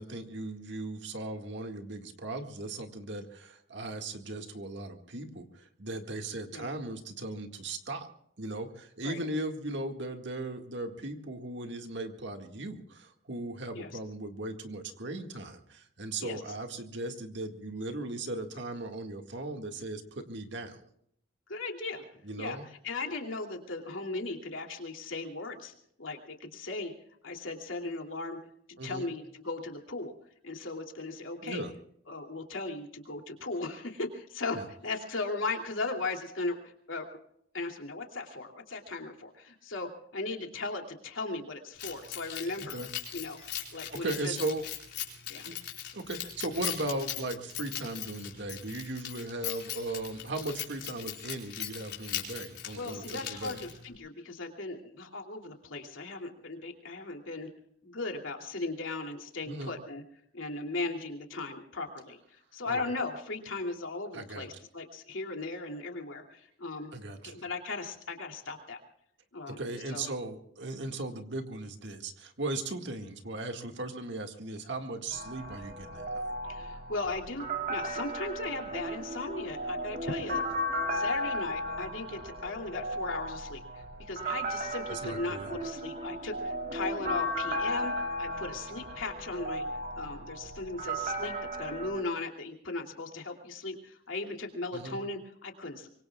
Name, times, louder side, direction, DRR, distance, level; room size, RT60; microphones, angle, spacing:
voice 1, 0.0-8.1 8.4-20.9 22.2-22.6 28.8-29.1 31.4-31.7 34.5-34.6 42.7-42.9 43.9-44.7 45.4-45.6 45.9-53.6 59.5-59.7 62.7-62.8 64.1-64.5 66.9-67.4 69.5-76.3 84.9-85.5 94.7-95.0, right 2 dB, 65° right, 5 dB, 2.0 m, -37 dB
voice 2, 21.5-22.0 22.4-25.7 26.0-26.9 27.2-28.4 28.8-30.1 30.4-31.6 32.1-37.1 37.5-42.8 43.1-43.4 43.7-44.3 45.3-45.5 52.7-57.5 57.8-60.0 60.3-66.9 67.2-68.8 69.3-69.6 69.9-70.1 76.4-80.4 80.7-89.7 90.0-95.9, left 3 dB, 90° left, 2 dB, 2.8 m, -37 dB
Keys jangling, 41.8-53.9, left 10 dB, 60° left, 4.7 m, -39 dB
sound 1, 75.1-92.0, equal, 50° right, 3.7 m, -35 dB
24.5 x 24.0 x 2.4 m, 0.71 s
head